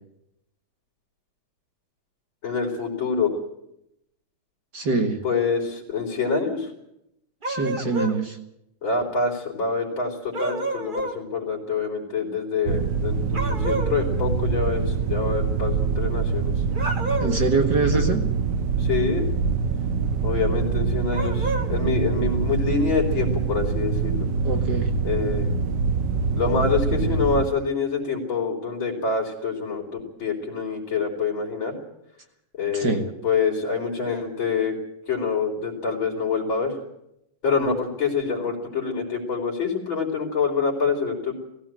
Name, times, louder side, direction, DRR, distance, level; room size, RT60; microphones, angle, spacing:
voice 1, 2.4-3.3 5.2-6.7 8.8-16.5 17.5-17.6 17.9-18.1 18.8-19.3 20.2-24.3 25.0-25.6 26.4-31.8 32.5-34.8 35.1-36.8 37.4-41.3, left 5 dB, 40° left, -2 dB, 4.2 m, -26 dB
voice 2, 4.7-5.2 7.5-8.4 17.2-18.2 24.4-24.9 32.7-33.0, right 3 dB, 40° right, 5 dB, 1.9 m, -24 dB
sound 1, 7.4-8.2 10.3-11.2 13.3-14.0 16.7-17.5 21.1-21.7, right 2 dB, 25° right, 1.3 m, -29 dB
sound 2, 12.7-27.5, right 5 dB, 85° right, 0.9 m, -24 dB
19.5 x 16.5 x 9.0 m, 0.80 s
omnidirectional pair, 3.4 m